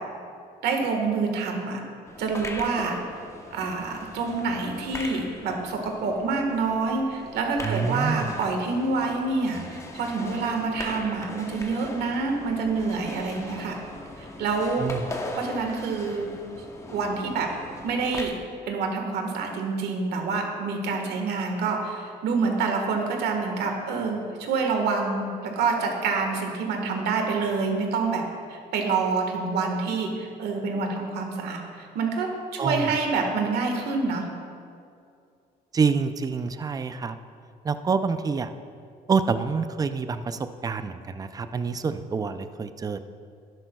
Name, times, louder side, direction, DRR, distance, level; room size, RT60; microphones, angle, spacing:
voice 1, 0.6-1.8 2.2-3.0 3.5-13.8 14.2-14.9 15.3-16.3 16.9-17.5 17.8-18.3 18.7-28.2 28.5-32.3 32.6-34.3, right 4 dB, 75° right, 2 dB, 1.5 m, -27 dB
sound 1, 2.0-18.3, left 2 dB, 15° left, 0.9 m, -40 dB
voice 2, 7.6-8.3 14.8-15.1 32.6-32.9 35.7-37.2 37.6-38.5 39.1-43.0, right 5 dB, 20° right, 10 dB, 0.4 m, -27 dB
12.0 x 10.5 x 2.3 m, 2.4 s
cardioid pair, 110°, 17 cm